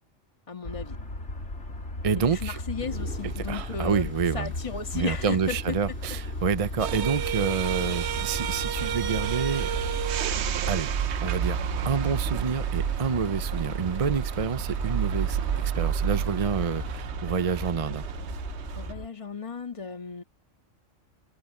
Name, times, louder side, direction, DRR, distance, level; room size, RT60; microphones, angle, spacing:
voice 1, 0.5-1.0 2.3-5.8 18.7-20.2, left 5 dB, 25° left, 1.7 m, -35 dB
sound 1, 0.6-19.1, left 1 dB, 60° left, 4.0 m, -36 dB
voice 2, 2.0-2.6 3.5-4.5 4.9-9.7 10.7-10.9 11.2-11.6 11.8-18.1, right 6 dB, 40° right, 0.5 m, -28 dB
sound 2, 2.8-17.0, right 1 dB, 10° right, 2.8 m, -50 dB
sound 3, 6.8-18.9, right 8 dB, 60° right, 1.0 m, -30 dB
omnidirectional pair, 1.3 m